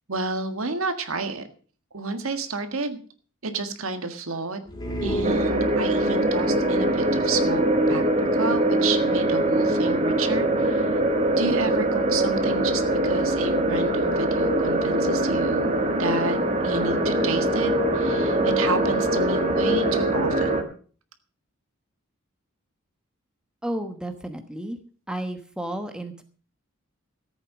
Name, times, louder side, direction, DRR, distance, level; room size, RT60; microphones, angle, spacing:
voice 1, 0.1-1.4 1.9-3.0 3.4-4.6 5.0-11.0 11.3-20.7, right 3 dB, 75° right, 8 dB, 1.7 m, -30 dB
sound 1, 4.7-6.2, equal, 20° left, 3.3 m, -31 dB
sound 2, 5.2-20.6, right 1 dB, 30° right, 1.6 m, -23 dB
voice 2, 23.6-24.8 25.1-26.2, right 1 dB, 5° right, 6 dB, 1.2 m, -32 dB
14.5 x 8.4 x 6.2 m, 0.42 s
head